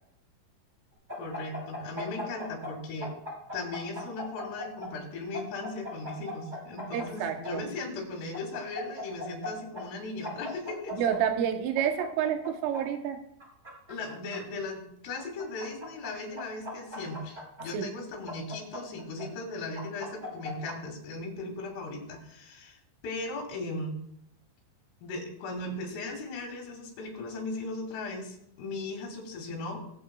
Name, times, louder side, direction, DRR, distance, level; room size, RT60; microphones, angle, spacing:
sound 1, 1.1-2.7 3.0-4.9 5.3-7.5 8.3-9.5 9.7-9.8 10.2-11.2 11.7-12.8 13.4-14.4 15.2-16.1 16.4-17.6 18.3-19.2 19.8-20.7, left 1 dB, 10° right, 2.9 m, -38 dB
voice 1, 1.2-3.1 3.5-11.0 13.9-22.8 23.0-24.0 25.0-29.9, left 2 dB, 90° left, 1 dB, 4.9 m, -37 dB
voice 2, 6.9-7.6 10.9-13.2 17.7-17.9, right 9 dB, 85° right, 6 dB, 3.5 m, -29 dB
22.5 x 8.0 x 2.3 m, 0.72 s
omnidirectional pair, 5.6 m